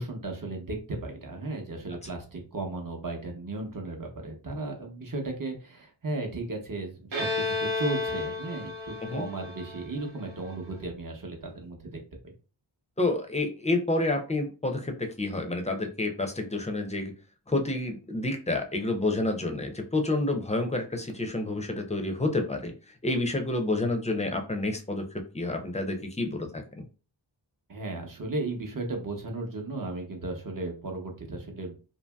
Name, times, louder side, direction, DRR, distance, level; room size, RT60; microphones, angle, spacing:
voice 1, 0.0-12.3 27.7-31.8, right 2 dB, 45° right, 2 dB, 0.8 m, -35 dB
Bowed string instrument, 7.1-10.7, left 3 dB, 75° right, 1.0 m, -32 dB
voice 2, 13.0-17.1 17.5-22.7 23.0-25.1 25.3-26.9, left 2 dB, 15° left, 4 dB, 0.5 m, -29 dB
2.7 x 2.6 x 2.2 m, 0.35 s
wide cardioid pair, 75°, 46 cm